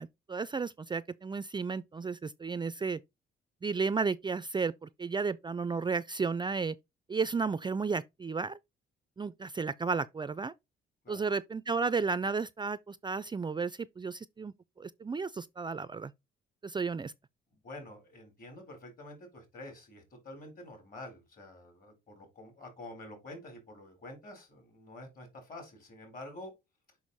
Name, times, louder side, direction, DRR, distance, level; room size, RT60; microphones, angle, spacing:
voice 1, 0.0-3.0 3.6-6.8 7.1-8.6 9.2-10.5 11.1-16.1 16.6-17.1, right 4 dB, 25° right, 0.4 m, -33 dB
voice 2, 17.6-26.5, left 1 dB, 45° left, 4.0 m, -48 dB
6.3 x 5.7 x 4.1 m
cardioid pair, 90°, 20 cm